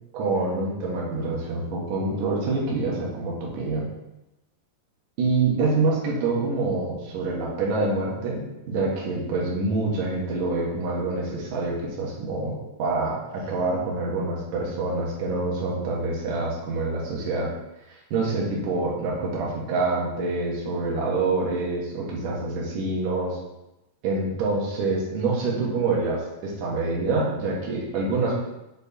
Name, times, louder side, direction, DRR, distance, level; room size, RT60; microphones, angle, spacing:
voice 1, 0.1-3.9 5.2-17.5 17.9-23.4 24.0-28.3, right 3 dB, 60° right, -3 dB, 2.5 m, -26 dB
6.8 x 4.5 x 4.3 m, 0.96 s
omnidirectional pair, 4.8 m